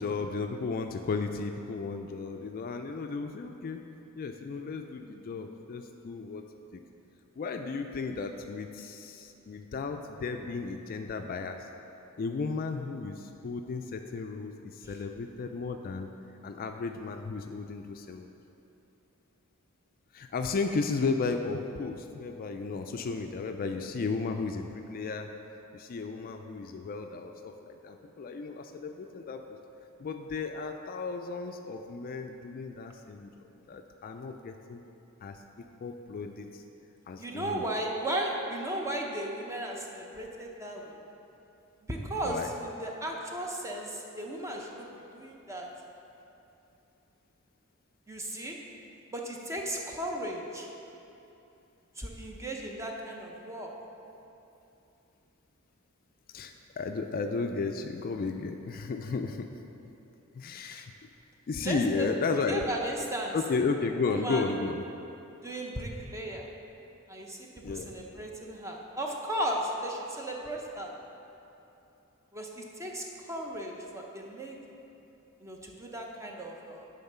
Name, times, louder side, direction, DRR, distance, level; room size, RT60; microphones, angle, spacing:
voice 1, 0.0-3.9 4.2-6.4 6.7-6.8 7.4-11.6 12.2-16.1 16.4-18.4 20.1-25.3 25.7-29.4 30.0-33.3 33.7-34.8 35.2-35.4 35.8-36.6 37.1-37.7 42.2-42.5 56.3-59.5 60.3-60.9 61.5-62.7 63.3-64.9 67.6-68.0, left 4 dB, 45° left, 5 dB, 0.3 m, -34 dB
voice 2, 37.2-41.0 41.9-45.7 48.1-48.6 49.1-50.7 52.0-53.7 61.6-62.1 62.5-63.4 64.1-64.5 65.4-66.4 67.1-70.9 72.3-74.6 75.4-76.9, right 1 dB, 15° right, 0 dB, 0.7 m, -36 dB
9.4 x 3.9 x 5.5 m, 2.9 s
head